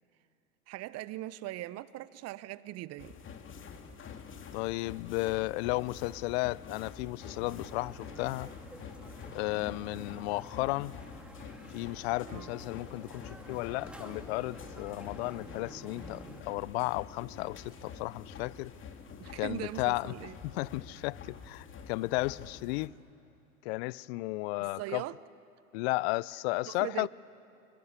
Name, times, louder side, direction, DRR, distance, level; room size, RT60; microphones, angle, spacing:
voice 1, 0.7-3.2 12.3-12.5 19.2-20.4 24.6-25.2 26.7-27.1, right 16 dB, 35° right, 0.9 m, -40 dB
sound 1, 3.0-22.9, left 6 dB, 30° left, 2.3 m, -47 dB
voice 2, 4.5-8.5 9.3-10.9 11.7-18.7 19.4-20.1 20.4-22.9 23.6-25.0 25.7-27.1, left 22 dB, 50° left, 0.6 m, -34 dB
sound 2, 7.2-16.4, right 1 dB, ahead, 2.2 m, -50 dB
25.5 x 24.5 x 8.3 m
hypercardioid pair, 95°, 43 cm